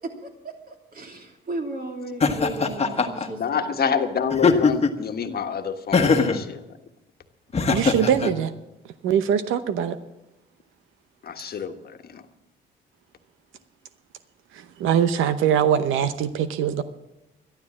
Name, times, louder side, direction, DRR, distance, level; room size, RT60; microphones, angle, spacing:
voice 1, 0.0-4.0, right 2 dB, 45° right, 3 dB, 3.1 m, -35 dB
Laughter, 2.2-3.3 4.3-5.0 5.9-6.4 7.5-8.3, left 4 dB, 30° left, 1.3 m, -21 dB
voice 2, 3.4-6.6 11.2-11.7 12.1-12.2, left 7 dB, 50° left, 6 dB, 1.4 m, -27 dB
voice 3, 7.7-8.5 9.0-10.0 14.8-16.8, right 9 dB, 85° right, 12 dB, 0.8 m, -22 dB
12.5 x 12.0 x 7.4 m, 0.94 s
cardioid pair, 90°, 20 cm